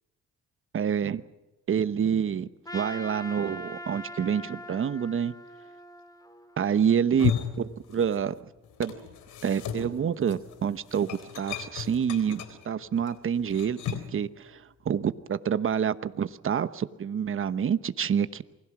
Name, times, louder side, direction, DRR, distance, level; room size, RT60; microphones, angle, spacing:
voice 1, 0.7-1.2 1.7-5.3 6.6-8.3 8.8-8.9 9.4-13.8 14.1-18.4, right 8 dB, 45° right, 13 dB, 1.1 m, -27 dB
Trumpet, 2.7-7.0, left 1 dB, 10° left, 2.5 m, -42 dB
sound 1, 7.0-8.4 8.6-14.2, left 8 dB, 80° left, 3.9 m, -35 dB
28.0 x 20.5 x 6.1 m, 1.1 s
cardioid pair, 90°, 30 cm